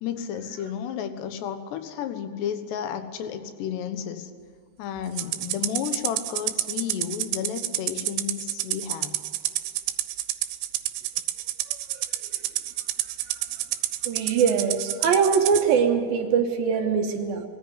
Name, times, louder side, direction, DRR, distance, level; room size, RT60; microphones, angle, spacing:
voice 1, 0.0-4.3 4.8-9.2, left 8 dB, 70° left, 9 dB, 3.2 m, -32 dB
Rattle (instrument), 5.2-15.6, right 14 dB, 90° right, 3.4 m, -29 dB
voice 2, 14.1-17.4, right 6 dB, 70° right, 4 dB, 2.4 m, -22 dB
22.0 x 14.5 x 9.8 m, 2.2 s
omnidirectional pair, 5.5 m